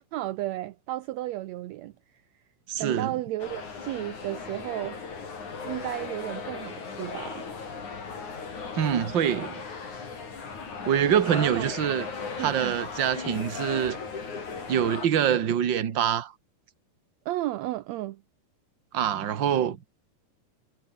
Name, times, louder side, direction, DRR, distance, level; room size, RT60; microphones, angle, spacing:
voice 1, 0.0-2.4 2.8-5.0 5.6-7.5 11.3-11.7 12.4-12.8 17.2-18.2, right 15 dB, 75° right, 1.6 m, -34 dB
voice 2, 2.7-3.1 8.8-9.6 10.8-12.1 12.4-14.0 14.7-16.3 18.9-19.8, right 9 dB, 45° right, 1.8 m, -25 dB
sound 1, 3.4-15.1, left 5 dB, 60° left, 6.1 m, -37 dB
omnidirectional pair, 3.9 m